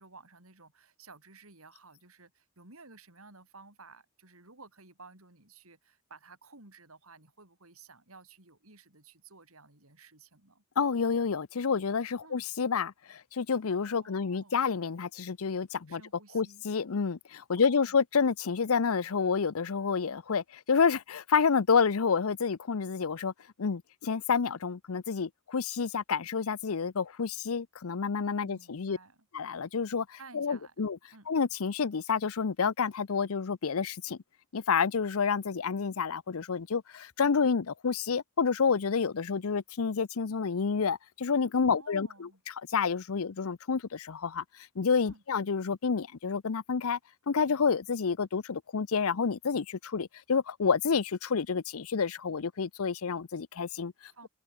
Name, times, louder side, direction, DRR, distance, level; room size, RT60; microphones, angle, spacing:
voice 1, 0.0-10.6 12.2-12.5 14.0-14.7 15.9-16.6 17.6-18.0 28.4-29.3 30.2-31.3 41.7-42.4 45.0-45.2 54.1-54.3, right 3 dB, 80° right, 6.0 m, -54 dB
voice 2, 10.8-16.0 16.3-23.3 23.6-29.0 29.3-31.0 31.3-34.2 34.5-44.4 44.8-47.0 47.3-53.9, left 5 dB, 80° left, 0.6 m, -29 dB
head